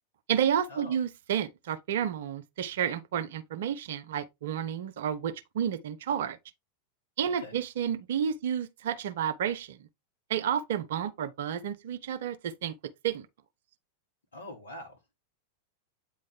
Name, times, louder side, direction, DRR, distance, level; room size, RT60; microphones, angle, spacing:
voice 1, 0.3-6.4 7.2-9.8 10.3-12.7 13.0-13.3, right 9 dB, 55° right, 0.5 m, -31 dB
voice 2, 7.2-7.6 14.3-15.1, left 1 dB, 70° left, 1.3 m, -44 dB
8.5 x 3.1 x 3.6 m
figure-of-eight pair, 90°, 0 cm